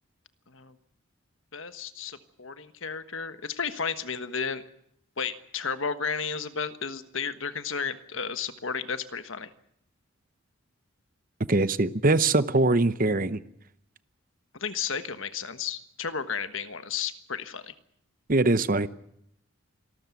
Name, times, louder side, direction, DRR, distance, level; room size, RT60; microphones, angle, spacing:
voice 1, 1.5-4.6 5.2-9.5 14.6-17.7, left 6 dB, 65° left, 11 dB, 1.4 m, -33 dB
voice 2, 11.5-13.4 18.3-18.9, right 2 dB, 40° right, 14 dB, 0.8 m, -22 dB
26.0 x 13.0 x 9.5 m, 0.74 s
head